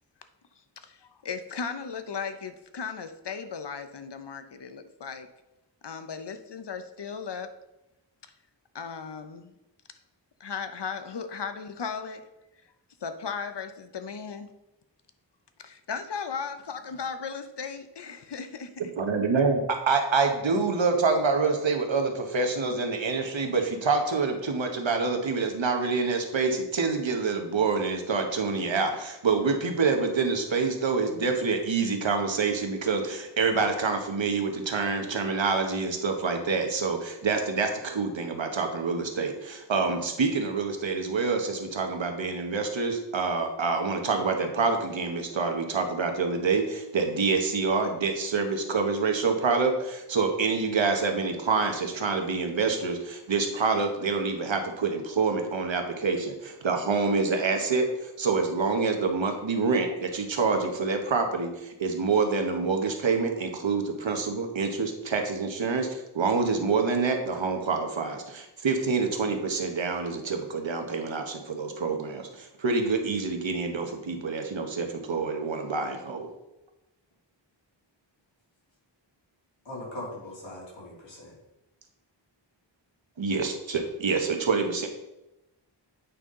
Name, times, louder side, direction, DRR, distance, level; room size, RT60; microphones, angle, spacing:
voice 1, 0.8-5.3 5.8-7.5 8.7-9.5 10.4-12.3 13.0-14.5 15.6-18.8, left 6 dB, 65° left, 9 dB, 0.7 m, -36 dB
voice 2, 19.0-76.3 83.2-84.9, right 4 dB, 85° right, 4 dB, 1.1 m, -27 dB
voice 3, 79.7-81.3, left 1 dB, 90° left, -5 dB, 2.7 m, -40 dB
8.4 x 5.5 x 3.7 m, 0.95 s
wide cardioid pair, 70°, 44 cm